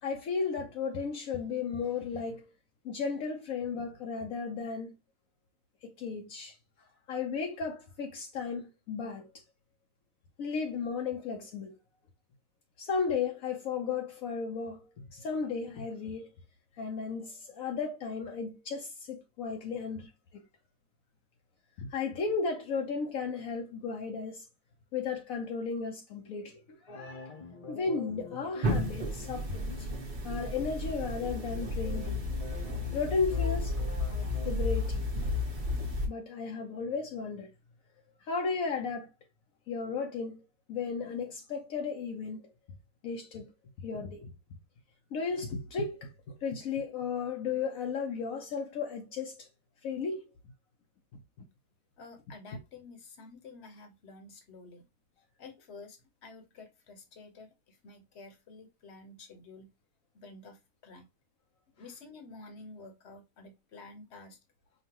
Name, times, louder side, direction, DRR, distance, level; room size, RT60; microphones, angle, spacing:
voice 1, 0.0-2.4 2.8-4.9 5.8-6.6 7.1-9.3 10.4-11.7 12.8-16.3 16.8-20.4 21.8-24.4 24.9-27.4 27.7-29.9 30.2-32.2 32.9-33.8 34.4-35.1 36.1-37.5 38.2-39.1 39.7-40.4 40.7-42.5 43.0-43.5 43.8-44.3 45.1-49.5 49.8-50.2, left 5 dB, 75° left, 1.1 m, -34 dB
sound 1, 26.9-34.6, left 3 dB, 35° left, 0.6 m, -46 dB
sound 2, 28.6-36.1, left 2 dB, 35° right, 1.1 m, -32 dB
voice 2, 52.0-54.8 55.4-59.7 60.1-61.0 61.7-64.4, left 3 dB, 50° left, 1.2 m, -50 dB
5.2 x 2.4 x 2.9 m
omnidirectional pair, 1.5 m